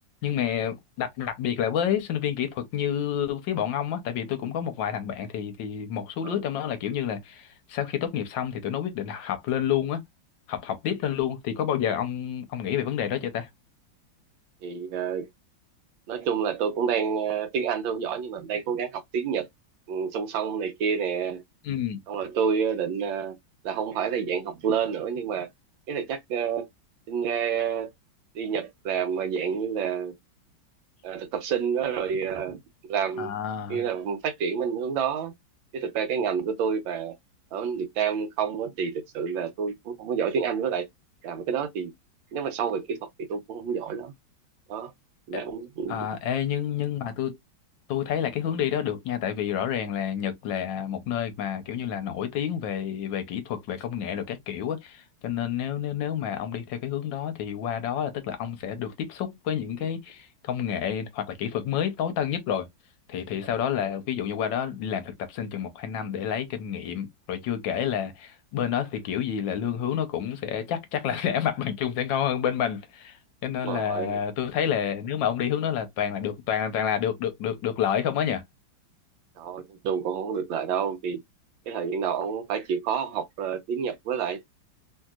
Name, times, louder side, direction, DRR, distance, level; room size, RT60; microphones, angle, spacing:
voice 1, 0.2-10.0 10.5-13.5 21.6-22.0 33.2-33.8 45.3-45.4 45.9-47.4 47.9-62.7 63.1-73.2 73.4-78.4, left 9 dB, 75° left, 1.3 m, -29 dB
voice 2, 14.6-15.3 16.1-19.5 19.9-21.4 22.1-23.4 23.6-25.5 25.9-26.7 27.1-27.9 28.3-30.2 31.0-32.6 32.9-33.3 33.7-35.3 35.7-37.1 37.5-40.9 41.2-41.9 42.3-44.1 44.7-44.9 45.3-46.1 73.6-74.2 79.4-81.2 81.7-84.4, right 7 dB, 80° right, 1.4 m, -29 dB
3.2 x 2.8 x 2.3 m
omnidirectional pair, 2.2 m